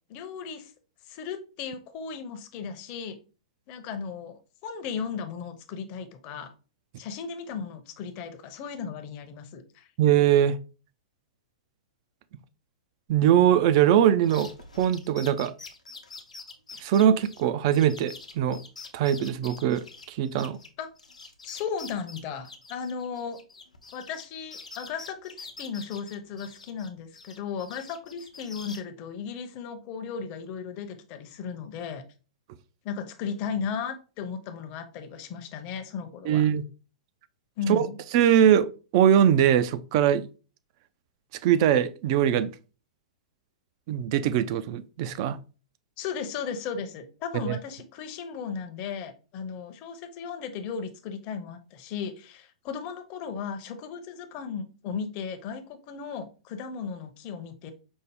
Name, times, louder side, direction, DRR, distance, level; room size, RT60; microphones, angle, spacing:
voice 1, 0.1-0.7 1.1-3.2 3.7-6.5 7.0-9.9 20.8-20.9 21.4-23.4 23.9-32.0 32.8-36.5 37.6-38.0 46.0-57.7, left 6 dB, 40° left, 0.6 m, -36 dB
voice 2, 10.0-10.6 13.1-14.5 14.8-15.5 16.8-18.6 18.9-20.6 36.3-36.6 37.7-37.9 38.1-40.3 41.4-42.5 43.9-45.4 47.5-47.6, right 10 dB, 45° right, 0.3 m, -22 dB
sound 1, 14.2-20.7 21.0-24.3 24.5-26.9 27.1-28.8, left 4 dB, 85° left, 0.6 m, -45 dB
5.2 x 2.0 x 3.4 m
figure-of-eight pair, 110°, 4 cm